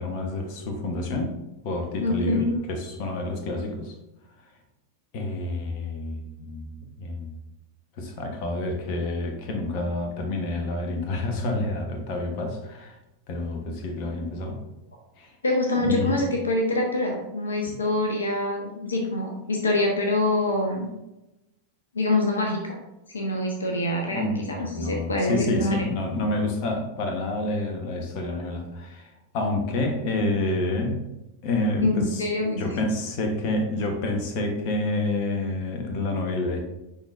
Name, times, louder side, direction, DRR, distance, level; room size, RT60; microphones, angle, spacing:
voice 1, 0.0-1.3 1.6-3.9 5.1-7.4 8.0-12.9 13.3-14.6 15.2-15.3 15.8-16.2 17.7-17.8 24.1-31.0 31.4-32.2 32.6-36.6, left 2 dB, 45° left, 4 dB, 1.1 m, -28 dB
voice 2, 2.0-2.5 15.4-20.9 21.9-22.8 23.1-25.8 28.3-28.4 31.8-32.6, left 2 dB, 70° left, 2 dB, 0.9 m, -25 dB
10.0 x 4.1 x 2.6 m, 0.93 s
figure-of-eight pair, 90°, 0 cm